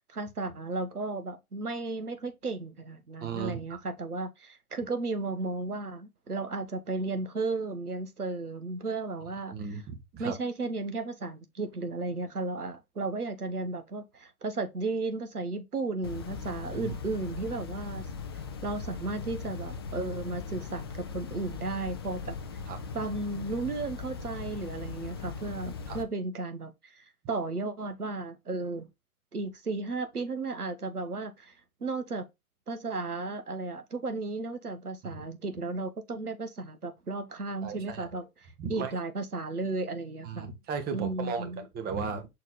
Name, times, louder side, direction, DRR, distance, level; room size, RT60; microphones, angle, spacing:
voice 1, 0.1-9.5 10.2-18.0 18.6-22.4 22.9-28.9 29.3-31.5 31.8-32.2 32.7-38.3 38.7-40.5 40.9-41.6, right 3 dB, 85° right, 1.4 m, -34 dB
voice 2, 3.2-3.6 9.5-10.4 16.8-16.9 22.7-22.8 25.9-26.0 35.0-35.2 37.6-38.1 38.6-38.9 40.2-42.3, right 5 dB, 20° right, 1.4 m, -35 dB
sound 1, 16.0-26.0, left 5 dB, 20° left, 0.3 m, -39 dB
6.4 x 4.2 x 3.6 m
figure-of-eight pair, 110°, 44 cm